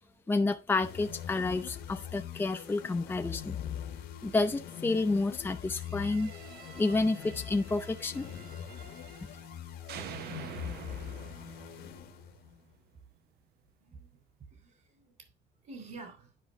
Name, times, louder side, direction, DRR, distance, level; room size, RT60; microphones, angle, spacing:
voice 1, 0.3-3.6 4.2-6.3 6.8-8.3, left 3 dB, 10° left, 0.6 m, -30 dB
sound 1, 0.8-12.6, left 9 dB, 70° left, 1.3 m, -43 dB
sound 2, 5.7-9.6 9.9-12.9, right 9 dB, 70° right, 0.8 m, -48 dB
voice 2, 6.5-7.1 13.8-14.1 14.5-15.1 15.6-16.3, right 3 dB, 50° right, 3.5 m, -50 dB
10.5 x 5.1 x 3.5 m
cardioid pair, 110°, 17 cm